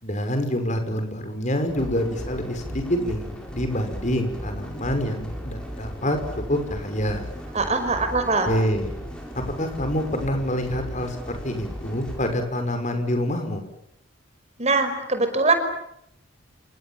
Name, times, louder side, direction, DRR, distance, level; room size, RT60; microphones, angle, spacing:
voice 1, 0.0-6.2 6.5-7.2 8.5-8.9 9.3-13.6, equal, 35° left, 6 dB, 6.0 m, -26 dB
sound 1, 1.7-12.3, equal, 5° left, 7.4 m, -36 dB
voice 2, 7.5-8.5 14.6-15.5, right 3 dB, 30° right, 8 dB, 5.5 m, -22 dB
28.5 x 27.5 x 7.5 m, 0.77 s
head